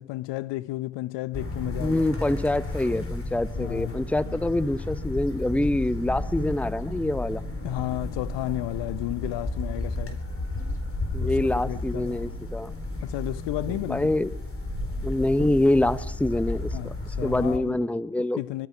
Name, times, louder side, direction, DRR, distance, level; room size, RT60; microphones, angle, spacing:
voice 1, 0.0-2.1 3.6-4.0 7.6-10.3 11.2-12.2 13.0-14.1 16.7-17.7 18.4-18.7, left 18 dB, 60° left, 0.8 m, -32 dB
sound 1, 1.3-17.6, left 2 dB, 25° left, 4.2 m, -33 dB
voice 2, 1.8-7.4 11.1-12.7 13.9-14.3 15.0-16.9 17.2-18.4, left 1 dB, 5° left, 1.0 m, -25 dB
24.5 x 22.5 x 4.9 m
hypercardioid pair, 55°, 49 cm